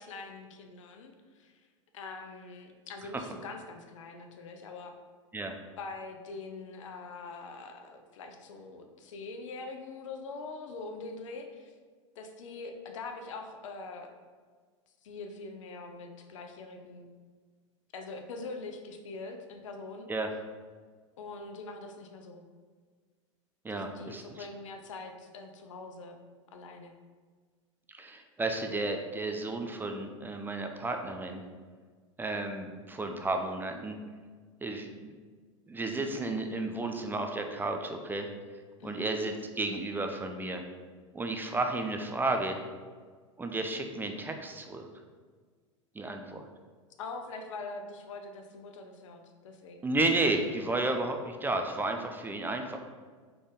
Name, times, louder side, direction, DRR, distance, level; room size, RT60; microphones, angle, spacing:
voice 1, 0.0-1.6 1.9-4.9 5.8-11.7 12.2-14.1 15.0-17.1 17.9-20.1 21.2-22.4 23.7-26.2 26.5-26.9 38.8-39.1 47.0-50.2, left 3 dB, 75° left, 5 dB, 0.6 m, -43 dB
voice 2, 23.6-24.2 27.9-31.4 32.2-34.0 34.6-35.2 35.7-38.3 38.8-40.6 41.1-42.6 43.4-44.9 46.0-46.5 49.8-52.8, right 2 dB, 10° right, 5 dB, 0.4 m, -32 dB
4.0 x 3.3 x 3.6 m, 1.5 s
hypercardioid pair, 90°, 16 cm